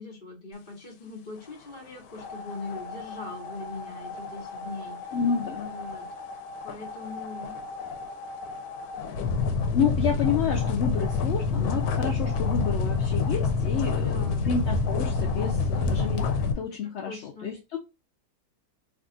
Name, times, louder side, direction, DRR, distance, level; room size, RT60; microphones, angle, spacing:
voice 1, 0.0-5.2 5.6-6.1 6.6-7.5 14.0-14.5 17.0-17.5, left 3 dB, 35° left, 1 dB, 1.1 m, -41 dB
sound 1, 2.1-16.5, left 4 dB, 85° left, 1.1 m, -29 dB
voice 2, 5.1-5.7 9.7-17.8, left 6 dB, 65° left, 1 dB, 0.7 m, -30 dB
2.7 x 2.4 x 3.7 m, 0.25 s
omnidirectional pair, 1.6 m